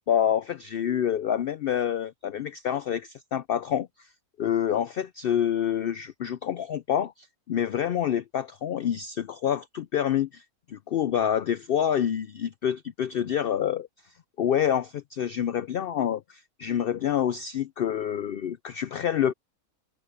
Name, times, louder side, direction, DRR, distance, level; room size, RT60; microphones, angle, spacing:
voice 1, 0.1-3.9 4.4-10.4 10.7-13.9 14.4-19.3, left 9 dB, 80° left, 0.5 m, -27 dB
omnidirectional pair, 1.5 m